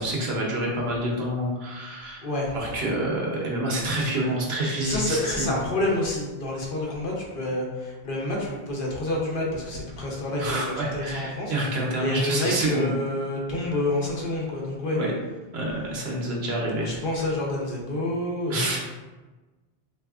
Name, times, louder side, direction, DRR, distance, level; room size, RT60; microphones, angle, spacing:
voice 1, 0.0-2.2 2.5-5.6 10.4-12.9 13.6-13.7 14.9-15.1 15.5-16.9 18.5-18.8, right 1 dB, 85° right, -3 dB, 1.0 m, -27 dB
voice 2, 2.2-2.5 4.8-11.5 12.0-15.0 16.8-18.8, left 1 dB, 60° left, -3 dB, 0.9 m, -28 dB
3.4 x 2.7 x 2.3 m, 1.2 s
omnidirectional pair, 1.0 m